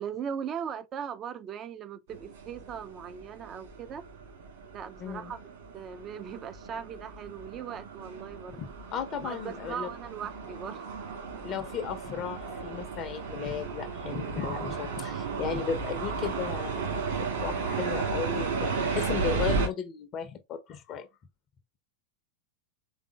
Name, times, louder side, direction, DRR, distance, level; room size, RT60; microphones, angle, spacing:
voice 1, 0.0-4.1 4.7-5.4 5.7-8.6 9.2-10.8, right 8 dB, 30° right, 0.4 m, -39 dB
sound 1, 2.1-19.7, right 4 dB, 55° right, 2.1 m, -34 dB
voice 2, 5.0-5.3 8.6-9.9 11.4-21.1, left 7 dB, 35° left, 0.6 m, -35 dB
4.7 x 3.7 x 2.3 m
figure-of-eight pair, 90°, 0 cm